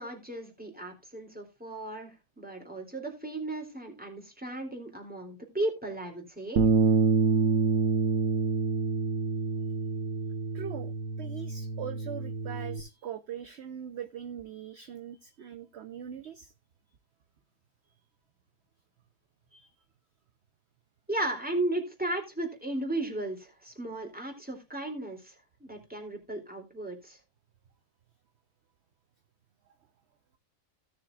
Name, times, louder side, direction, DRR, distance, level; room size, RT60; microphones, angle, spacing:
voice 1, 0.0-6.6 21.1-25.3 25.6-27.2, right 1 dB, 5° right, 2.8 m, -35 dB
Bass guitar, 6.6-12.8, right 4 dB, 70° right, 1.6 m, -27 dB
voice 2, 10.5-16.5 19.5-19.7, right 8 dB, 55° right, 0.9 m, -41 dB
16.5 x 6.6 x 2.4 m
omnidirectional pair, 1.5 m